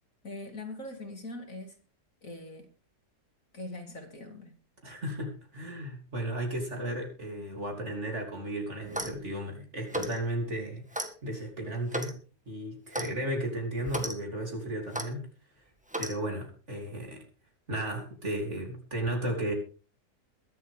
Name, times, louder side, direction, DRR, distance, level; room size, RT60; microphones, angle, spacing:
voice 1, 0.2-1.8 2.2-2.7 3.5-4.5, left 2 dB, 50° left, 3.0 m, -42 dB
voice 2, 4.8-12.2 12.5-15.3 16.0-17.2 17.7-19.5, right 1 dB, 45° right, 3.5 m, -34 dB
Clock, 8.8-9.2 9.9-10.2 10.9-11.1 11.9-12.2 12.9-13.1 13.9-14.1 14.9-15.1 15.9-16.2, right 1 dB, 5° right, 1.4 m, -34 dB
22.0 x 7.8 x 3.6 m
omnidirectional pair, 1.8 m